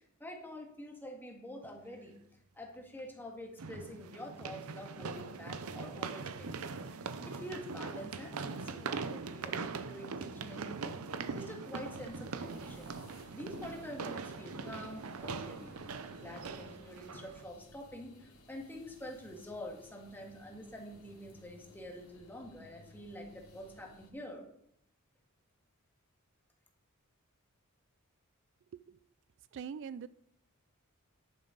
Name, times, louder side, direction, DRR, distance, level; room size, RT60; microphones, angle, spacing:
voice 1, 0.2-2.1 2.6-10.9 11.3-13.0 13.3-24.5, equal, 10° left, 1 dB, 1.9 m, -47 dB
sound 1, 1.6-1.7 3.6-17.4, right 4 dB, 85° right, 0.7 m, -41 dB
sound 2, 11.9-24.1, left 1 dB, 90° left, 2.8 m, -59 dB
voice 2, 29.5-30.1, right 7 dB, 60° right, 16 dB, 0.3 m, -43 dB
10.5 x 9.6 x 3.9 m, 0.72 s
head